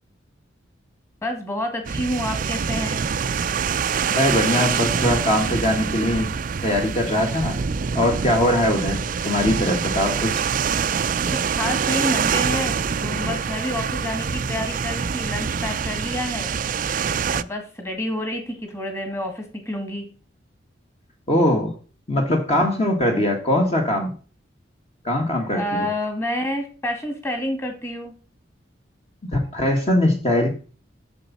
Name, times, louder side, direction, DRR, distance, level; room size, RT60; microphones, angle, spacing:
voice 1, 1.2-3.0 11.3-16.5 17.3-20.1 25.5-28.1, left 1 dB, 15° left, 5 dB, 2.2 m, -28 dB
sound 1, 1.8-17.4, right 6 dB, 45° right, 0.4 m, -25 dB
voice 2, 4.1-6.3 6.6-7.6 7.9-10.3 21.3-21.7 22.1-24.1 25.0-25.9 29.2-30.5, left 1 dB, 35° left, 1 dB, 1.8 m, -21 dB
8.3 x 7.1 x 4.2 m, 0.37 s
head